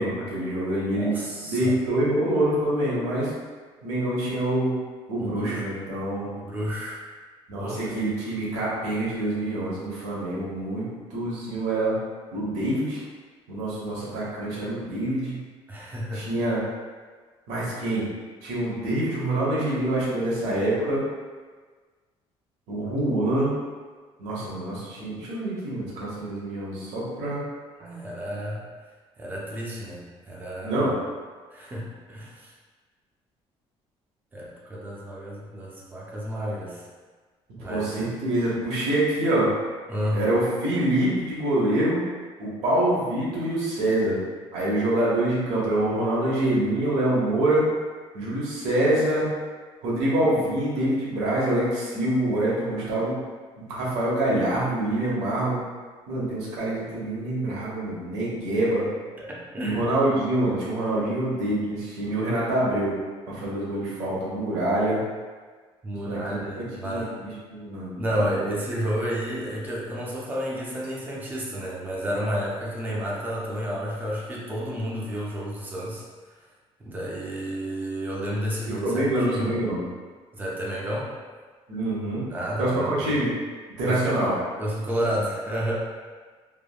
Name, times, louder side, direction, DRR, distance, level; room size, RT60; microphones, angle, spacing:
voice 1, 0.0-1.1 1.4-3.3 3.8-4.7 5.1-6.3 7.5-11.9 12.3-13.0 13.5-15.4 16.1-16.6 17.5-18.1 18.4-21.0 22.7-23.5 24.2-27.4 30.6-30.9 37.7-39.5 40.1-42.0 42.4-44.2 44.5-47.7 48.1-49.3 49.8-53.2 53.6-55.6 56.1-58.9 59.6-62.9 63.3-65.0 65.9-67.9 68.4-68.5 78.8-79.8 81.7-82.3 82.6-83.3 83.8-84.3, right 1 dB, 90° right, -6 dB, 1.0 m, -25 dB
voice 2, 1.0-1.8 5.2-5.7 6.4-7.0 7.5-7.8 15.7-16.3 27.8-28.7 29.2-30.9 31.5-32.5 34.3-36.9 37.5-38.1 39.9-40.2 59.2-59.8 65.8-67.1 68.0-76.4 76.8-79.7 80.3-81.1 82.3-83.2 83.8-84.3 84.6-85.7, equal, 15° right, -5 dB, 0.5 m, -31 dB
3.3 x 2.0 x 2.3 m, 1.5 s
cardioid pair, 155°, 11 cm